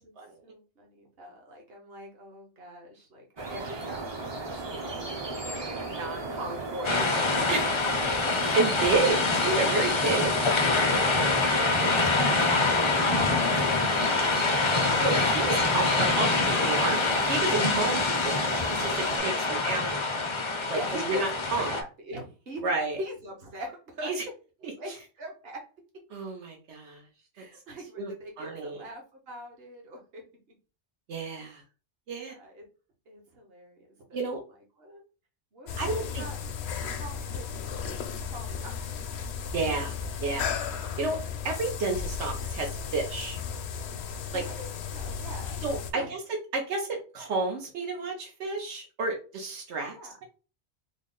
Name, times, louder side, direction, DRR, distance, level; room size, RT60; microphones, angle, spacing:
voice 1, 0.4-7.5 8.2-8.6 11.0-17.4 20.6-22.6 23.0-24.1 24.6-25.6 27.3-30.2 31.4-31.6 32.2-32.7 33.1-34.2 34.8-35.0 35.5-36.4 36.9-38.9 44.3-45.6 45.9-46.1 49.9-50.1, right 1 dB, 65° right, 1 dB, 1.2 m, -42 dB
sound 1, 3.4-19.2, right 3 dB, 35° right, 0.4 m, -36 dB
sound 2, 6.8-21.8, left 3 dB, 45° left, 0.4 m, -25 dB
voice 2, 8.3-10.4 15.0-20.0 20.7-20.8 21.1-21.8 22.6-23.0 24.0-24.2 24.6-24.7 26.1-27.0 28.0-28.1 28.4-28.8 31.1-31.6 32.1-32.3 34.1-34.4 35.8-36.2 39.5-40.6 41.0-41.2 41.4-43.4 44.3-44.4 45.6-49.9, right 3 dB, 85° right, 2 dB, 1.1 m, -30 dB
sound 3, 35.7-45.9, left 7 dB, 75° left, 0.8 m, -35 dB
3.5 x 2.1 x 3.7 m, 0.34 s
omnidirectional pair, 1.1 m